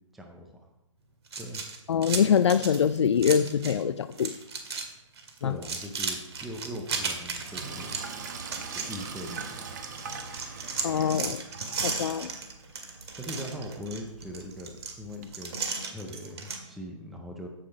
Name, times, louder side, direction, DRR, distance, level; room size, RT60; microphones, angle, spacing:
voice 1, 0.1-0.6 1.4-1.6 5.4-8.0 8.7-9.8 13.2-15.6 15.9-17.5, equal, ahead, 2 dB, 0.4 m, -40 dB
sound 1, 1.3-3.8 4.1-4.9 5.2-9.6 10.0-16.6, right 4 dB, 55° right, 2.0 m, -35 dB
voice 2, 1.9-4.3 5.4-5.5 10.8-11.4 11.8-12.3, left 7 dB, 60° left, 10 dB, 0.5 m, -24 dB
Sink (filling or washing), 7.4-15.2, right 5 dB, 35° right, 1.1 m, -42 dB
15.0 x 5.9 x 5.1 m, 0.93 s
hypercardioid pair, 160°, 17 cm